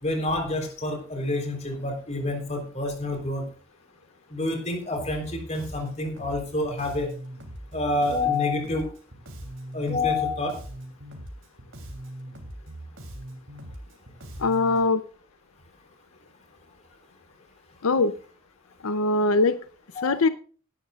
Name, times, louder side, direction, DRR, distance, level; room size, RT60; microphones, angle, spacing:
voice 1, 0.0-3.4 4.3-7.1 7.7-8.9 9.7-10.5 20.0-20.1, left 2 dB, 30° left, 4 dB, 3.7 m, -28 dB
Bass guitar, 4.9-14.8, right 1 dB, 60° right, 3.2 m, -41 dB
voice 2, 14.4-15.0 17.8-18.1 18.8-19.6 20.0-20.3, left 3 dB, 85° left, 12 dB, 0.7 m, -21 dB
18.0 x 11.5 x 2.5 m, 0.40 s
head